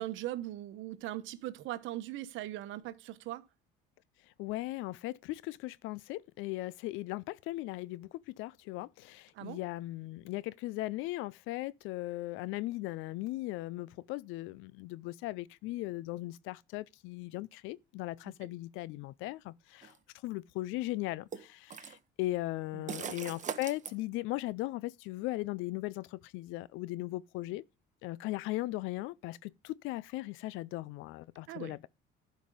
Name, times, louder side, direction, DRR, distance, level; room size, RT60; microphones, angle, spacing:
voice 1, 0.0-3.4 9.3-9.6 18.2-18.5 22.7-22.9 31.5-31.8, right 14 dB, 70° right, 1.0 m, -40 dB
voice 2, 4.4-8.1 8.4-19.9 20.2-27.6 28.0-31.9, left 18 dB, 75° left, 0.5 m, -38 dB
sound 1, 19.8-20.0 21.3-22.0 22.9-23.9, right 7 dB, 35° right, 1.0 m, -40 dB
11.5 x 5.2 x 5.1 m
supercardioid pair, 90°, 21 cm